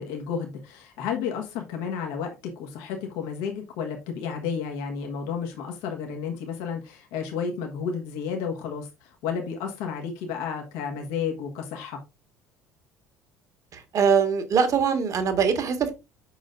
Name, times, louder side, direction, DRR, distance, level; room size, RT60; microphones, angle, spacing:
voice 1, 0.0-12.0, left 6 dB, 60° left, 1.4 m, -32 dB
voice 2, 13.7-15.9, right 6 dB, 40° right, 1.7 m, -22 dB
8.7 x 6.3 x 2.6 m
figure-of-eight pair, 60°, 8 cm